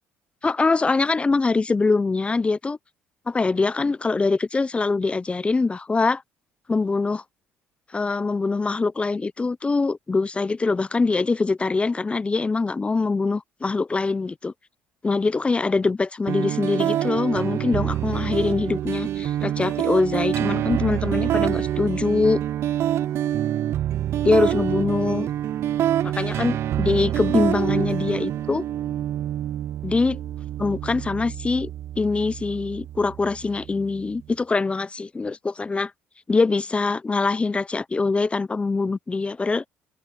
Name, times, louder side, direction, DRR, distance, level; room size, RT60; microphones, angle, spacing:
voice 1, 0.4-2.8 3.3-6.2 6.7-7.2 7.9-14.5 15.0-22.4 24.2-25.3 26.0-28.6 29.8-30.2 30.6-31.7 32.0-35.9 36.3-39.7, left 3 dB, 25° left, 0.6 m, -23 dB
sound 1, 16.3-34.2, right 12 dB, 60° right, 0.4 m, -26 dB
open air
supercardioid pair, 70°, 5 cm